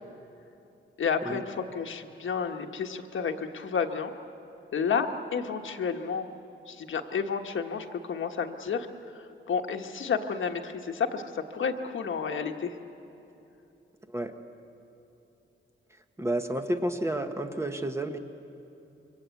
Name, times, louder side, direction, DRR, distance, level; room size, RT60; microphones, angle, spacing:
voice 1, 1.0-4.1 4.7-6.3 6.7-8.9 9.1-12.7, left 6 dB, 75° left, 4 dB, 1.4 m, -31 dB
voice 2, 16.2-18.2, right 1 dB, 15° right, 6 dB, 1.0 m, -30 dB
26.5 x 24.5 x 8.3 m, 2.9 s
wide cardioid pair, 170°, 21 cm